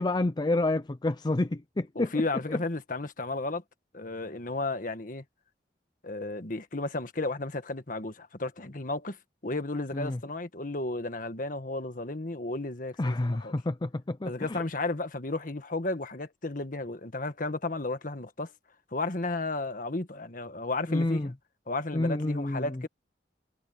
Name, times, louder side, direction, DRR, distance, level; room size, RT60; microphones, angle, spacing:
voice 1, 0.0-2.1 2.5-2.6 9.9-10.2 13.0-14.6 20.9-21.3 21.9-22.6, left 2 dB, 25° left, 0.5 m, -29 dB
voice 2, 1.9-3.6 3.9-5.2 6.0-9.2 9.4-13.5 14.2-18.5 18.9-21.3 21.7-22.9, left 2 dB, 50° left, 1.6 m, -33 dB
head